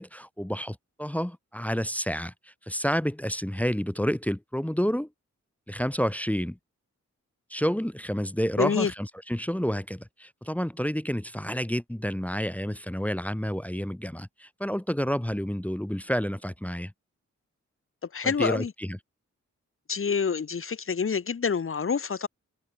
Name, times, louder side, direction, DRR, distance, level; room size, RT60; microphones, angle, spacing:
voice 1, 0.0-5.1 5.7-6.6 7.5-16.9 18.2-19.0, equal, 5° left, 0.9 m, -29 dB
voice 2, 8.6-8.9 18.1-18.7 19.9-22.3, left 6 dB, 45° left, 0.9 m, -27 dB
cardioid pair, 65°, 29 cm